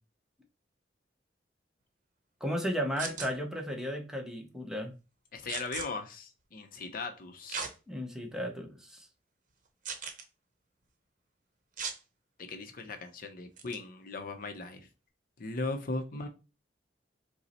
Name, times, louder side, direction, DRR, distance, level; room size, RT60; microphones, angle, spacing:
voice 1, 2.4-4.9 7.9-9.1, equal, 5° right, 2 dB, 0.7 m, -34 dB
sound 1, 3.0-3.3 5.5-5.9 7.5-7.7 8.3-8.4 9.8-10.2 11.8-12.0 13.6-13.8, right 6 dB, 45° right, 0.7 m, -37 dB
voice 2, 5.3-7.7 12.4-14.9 15.4-16.3, left 3 dB, 50° left, 6 dB, 0.6 m, -38 dB
5.3 x 2.0 x 4.1 m, 0.31 s
head